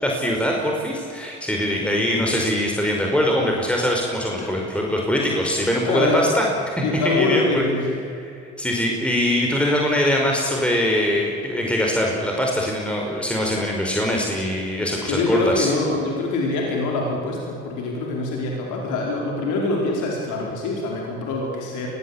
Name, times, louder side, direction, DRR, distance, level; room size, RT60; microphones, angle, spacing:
voice 1, 0.0-6.5 6.8-7.6 8.6-15.7, equal, 5° left, -1 dB, 5.0 m, -22 dB
voice 2, 4.3-4.6 5.8-6.3 6.8-8.0 14.9-21.9, left 3 dB, 70° left, -1 dB, 4.7 m, -24 dB
23.0 x 18.0 x 8.7 m, 2.5 s
hypercardioid pair, 65°, 32 cm